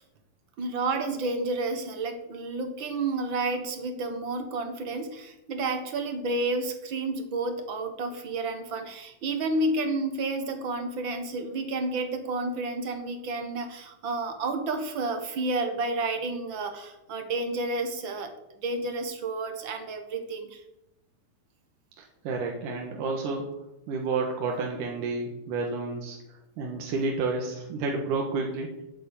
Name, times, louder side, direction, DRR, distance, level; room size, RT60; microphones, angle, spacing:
voice 1, 0.6-18.3 18.6-20.6, right 2 dB, 45° right, 6 dB, 1.8 m, -30 dB
voice 2, 22.0-23.5 23.9-26.2 26.6-28.8, right 4 dB, 80° right, 1 dB, 3.0 m, -30 dB
10.5 x 8.5 x 8.4 m, 0.91 s
omnidirectional pair, 3.6 m